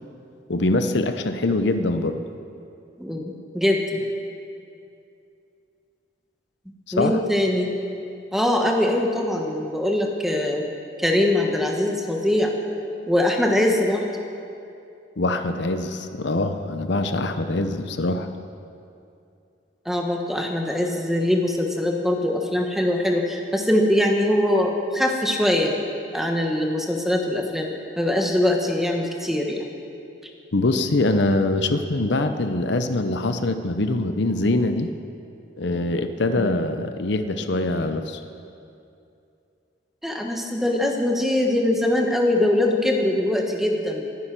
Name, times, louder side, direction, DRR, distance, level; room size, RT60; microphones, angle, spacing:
voice 1, 0.5-2.2 6.9-7.2 15.2-18.3 30.5-34.9 35.6-38.2, left 2 dB, 65° left, 8 dB, 0.7 m, -23 dB
voice 2, 3.0-4.0 6.9-7.7 8.3-10.6 11.0-12.5 13.1-14.1 19.8-25.7 26.1-27.7 28.0-29.7 36.3-36.7 40.0-44.0, left 1 dB, ahead, 1 dB, 1.3 m, -22 dB
22.0 x 10.0 x 6.0 m, 2.6 s
head